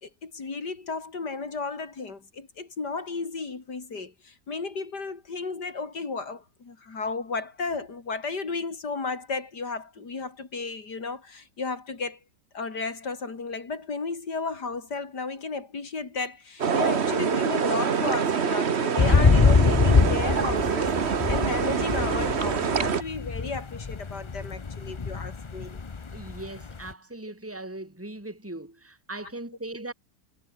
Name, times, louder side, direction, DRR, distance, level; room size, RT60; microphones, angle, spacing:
voice 1, 0.0-12.2 12.5-25.8, left 4 dB, 80° left, 3.9 m, -34 dB
sound 1, 16.6-23.0, right 6 dB, 45° right, 1.4 m, -25 dB
sound 2, 19.0-26.9, left 4 dB, 45° left, 0.4 m, -24 dB
voice 2, 26.1-29.9, right 2 dB, 10° right, 3.3 m, -39 dB
omnidirectional pair, 1.8 m